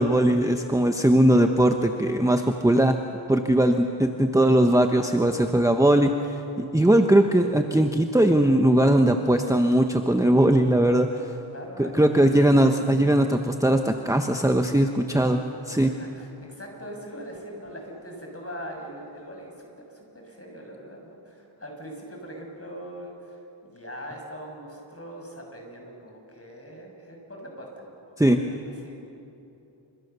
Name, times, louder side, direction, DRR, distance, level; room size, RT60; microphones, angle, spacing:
voice 1, 0.0-3.0 3.3-6.1 6.6-11.3 11.8-15.4 15.7-15.9 28.2-28.4, right 1 dB, 5° right, 5 dB, 1.1 m, -20 dB
voice 2, 11.5-11.9 12.2-12.4 15.8-28.9, equal, 30° left, 1 dB, 6.5 m, -41 dB
28.5 x 26.0 x 6.9 m, 2.8 s
wide cardioid pair, 80°, 47 cm